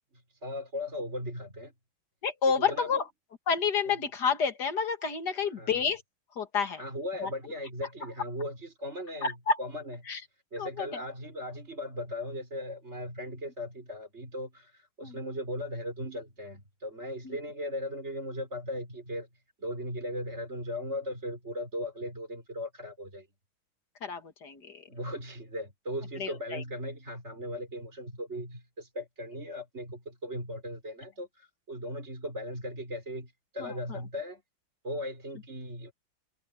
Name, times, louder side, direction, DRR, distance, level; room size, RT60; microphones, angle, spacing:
voice 1, 0.1-1.7 2.7-2.9 3.8-3.9 5.4-5.8 6.8-10.0 10.5-19.3 19.6-23.3 24.9-34.4 34.8-35.9, left 1 dB, 30° right, 6.0 m, -38 dB
voice 2, 2.2-3.0 3.5-6.0 6.4-6.8 9.2-9.6 10.1-10.2 10.6-11.0 15.0-15.2 24.0-24.8 26.2-26.6, left 5 dB, 55° left, 2.5 m, -29 dB
omnidirectional pair, 2.3 m